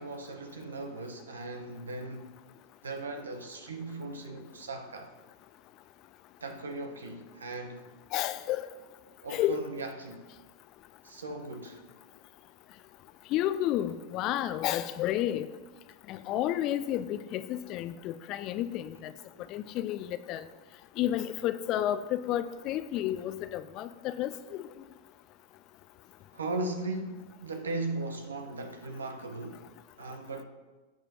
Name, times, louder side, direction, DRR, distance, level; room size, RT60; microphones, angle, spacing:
voice 1, 0.0-2.3 2.8-5.1 6.4-7.8 9.2-10.2 11.0-11.8 19.3-19.5 26.3-29.7 30.0-30.4, right 2 dB, 70° right, 1.1 m, -38 dB
voice 2, 8.1-8.7 9.3-9.7 13.3-15.5 16.1-19.1 19.5-20.4 21.0-24.6, left 12 dB, 40° left, 0.5 m, -31 dB
17.5 x 8.5 x 3.0 m
figure-of-eight pair, 90°, 0 cm